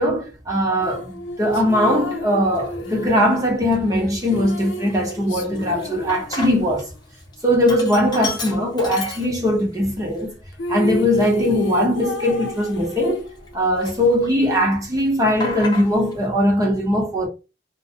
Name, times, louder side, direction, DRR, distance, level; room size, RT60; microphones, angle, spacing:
voice 1, 0.0-6.9 7.4-10.3 10.7-13.3 13.5-17.3, equal, 20° right, 0.8 m, -20 dB
sound 1, 0.8-7.0 10.2-10.3 10.5-13.7, left 2 dB, 85° left, 0.6 m, -32 dB
Sink (filling or washing), 1.6-1.7 2.4-2.9 3.3-3.4 3.7-6.9 7.2-9.7 10.2-10.3 10.9-13.5 13.8-14.6 14.8-16.2, left 3 dB, 25° left, 0.6 m, -34 dB
2.6 x 2.2 x 2.8 m
head